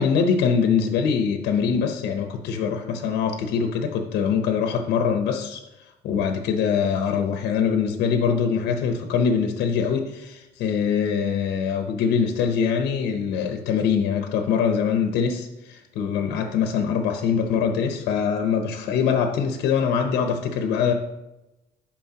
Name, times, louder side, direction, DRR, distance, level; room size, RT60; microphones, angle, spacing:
voice 1, 0.0-20.9, left 6 dB, 80° left, 5 dB, 0.7 m, -23 dB
11.5 x 4.3 x 2.8 m, 0.96 s
cardioid pair, 110°, 17 cm